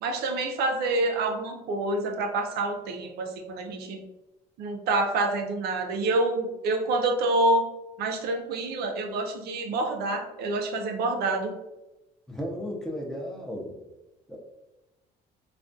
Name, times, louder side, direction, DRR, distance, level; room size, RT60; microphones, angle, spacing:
voice 1, 0.0-4.0 4.6-7.6 8.0-11.5, right 2 dB, 70° right, 3 dB, 0.4 m, -27 dB
voice 2, 12.3-13.7 14.3-14.4, equal, 5° left, -2 dB, 0.4 m, -34 dB
2.3 x 2.1 x 2.5 m, 0.97 s
cardioid pair, 110°, 17 cm